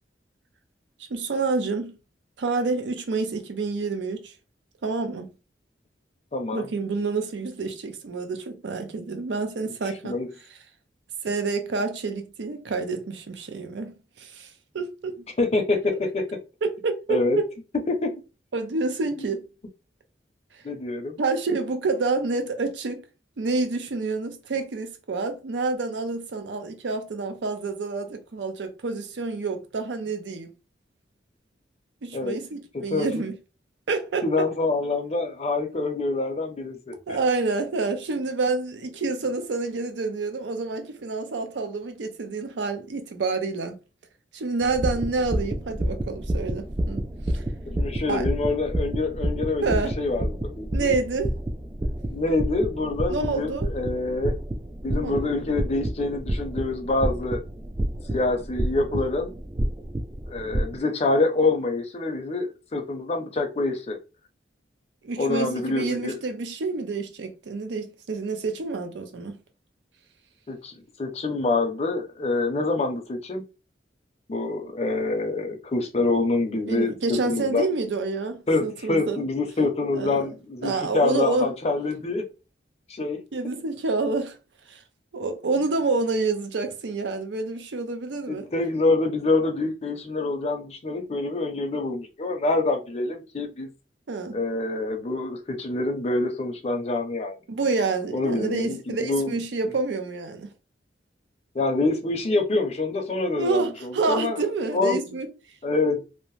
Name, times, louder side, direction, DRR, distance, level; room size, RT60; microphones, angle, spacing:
voice 1, 1.1-2.0 2.4-4.3 4.8-5.3 6.5-10.2 11.2-15.2 16.6-17.5 18.5-19.5 21.2-23.0 23.4-30.5 32.0-33.3 33.9-34.5 37.1-43.8 44.3-47.1 47.3-47.4 48.1-48.3 49.6-50.0 50.7-51.3 53.1-53.7 55.0-55.2 65.0-69.4 76.7-79.2 79.9-80.3 80.6-81.5 83.3-84.4 84.7-84.8 85.1-88.5 94.1-94.4 97.5-100.5 103.4-105.3, right 3 dB, 85° right, 0.5 m, -28 dB
voice 2, 6.3-6.7 9.6-9.7 10.0-10.3 15.4-16.2 17.1-17.4 17.9-18.1 19.1-19.3 20.6-21.2 32.1-32.4 32.7-33.1 34.2-37.2 47.7-50.9 52.1-54.4 54.8-57.4 58.1-59.3 60.3-64.0 65.2-66.1 70.5-73.4 74.3-77.7 78.5-82.2 82.9-83.2 88.3-93.7 94.3-97.3 98.1-99.4 99.6-99.7 101.5-104.4 104.7-105.0 105.6-106.0, left 3 dB, 35° left, 0.5 m, -26 dB
sound 1, 44.6-60.8, right 1 dB, 20° right, 0.3 m, -29 dB
2.7 x 2.0 x 3.1 m
head